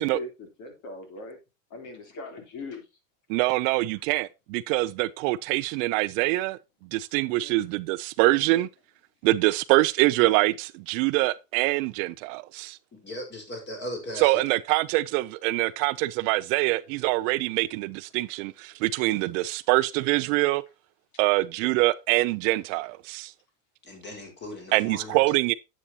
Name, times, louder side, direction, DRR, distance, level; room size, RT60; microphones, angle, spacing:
voice 1, 0.0-1.4 1.7-2.8 7.3-7.5, left 2 dB, 45° left, 3.5 m, -40 dB
voice 2, 3.3-6.6 6.9-8.7 9.2-12.8 14.2-20.6 21.2-23.3 24.7-25.5, right 19 dB, 60° right, 0.7 m, -24 dB
voice 3, 12.9-14.4 23.8-25.2, left 1 dB, 25° left, 4.6 m, -38 dB
9.8 x 8.5 x 2.8 m
supercardioid pair, 145°, 43 cm